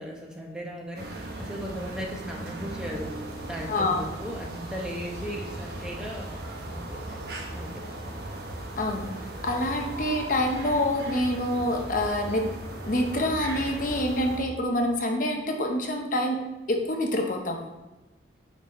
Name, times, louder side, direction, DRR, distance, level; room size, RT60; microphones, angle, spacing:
voice 1, 0.0-3.2 3.5-6.3 6.7-7.2 7.5-7.9, equal, 5° right, -2 dB, 0.9 m, -37 dB
sound 1, 0.9-14.4, right 1 dB, 55° right, 1.1 m, -37 dB
voice 2, 3.7-4.0 8.8-9.1 9.4-12.6 12.8-17.7, left 1 dB, 45° left, 2 dB, 0.7 m, -26 dB
9.0 x 4.1 x 4.1 m, 1.1 s
head